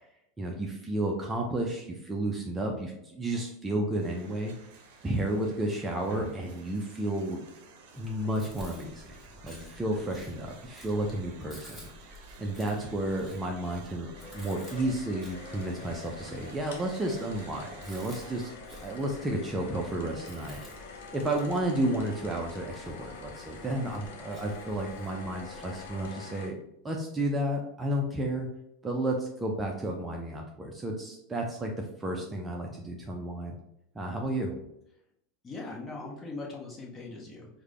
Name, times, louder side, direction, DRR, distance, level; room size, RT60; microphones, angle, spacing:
voice 1, 0.4-4.5 5.0-7.4 7.9-9.2 9.4-11.9 12.4-18.5 18.8-20.6 21.1-26.5 26.8-28.5 28.8-33.6 33.9-34.5, right 1 dB, 15° right, 0 dB, 0.6 m, -32 dB
sound 1, 4.0-18.6, right 4 dB, 55° right, 0.7 m, -51 dB
Chewing mastication, 8.0-26.1, left 1 dB, 5° left, 1.2 m, -52 dB
sound 2, 14.1-26.5, left 3 dB, 60° left, 0.8 m, -46 dB
voice 2, 35.4-37.5, left 3 dB, 25° left, -1 dB, 1.1 m, -40 dB
4.8 x 2.2 x 3.1 m, 0.77 s
figure-of-eight pair, 85°, 0 cm